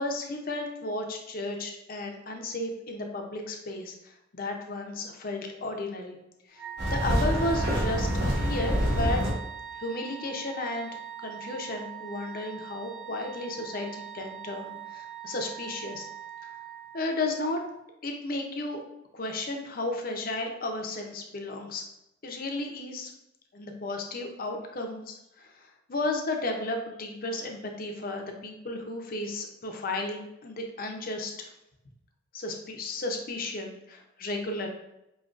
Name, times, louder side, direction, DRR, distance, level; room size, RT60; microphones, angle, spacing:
voice 1, 0.0-6.2 6.5-9.4 9.8-10.9 11.2-16.1 16.9-17.6 18.0-18.8 19.1-21.8 22.2-23.1 23.5-31.5 32.3-34.7, left 2 dB, 45° left, 3 dB, 0.6 m, -34 dB
Wind instrument woodwind instrument, 6.5-17.3, right 9 dB, 80° right, 1.2 m, -41 dB
sound 1, 6.8-9.3, equal, 55° right, 1.1 m, -26 dB
5.1 x 2.8 x 2.5 m, 0.86 s
head